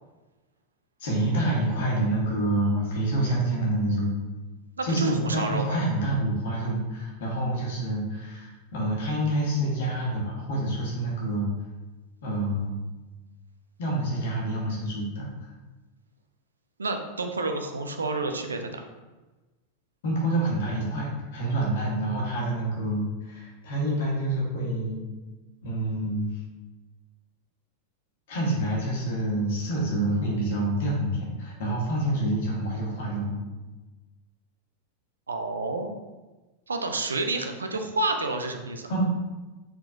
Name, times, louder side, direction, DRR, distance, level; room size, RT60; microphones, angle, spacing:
voice 1, 1.0-4.1 4.8-11.5 12.2-12.8 13.8-15.5 20.0-25.0 25.6-26.3 28.3-33.4 38.9-39.0, right 1 dB, 55° left, -3 dB, 1.3 m, -27 dB
voice 2, 4.8-5.8 16.8-18.8 35.3-35.9 36.7-38.9, right 2 dB, 75° right, 5 dB, 0.4 m, -29 dB
4.4 x 3.8 x 2.5 m, 1.2 s
figure-of-eight pair, 90°, 0 cm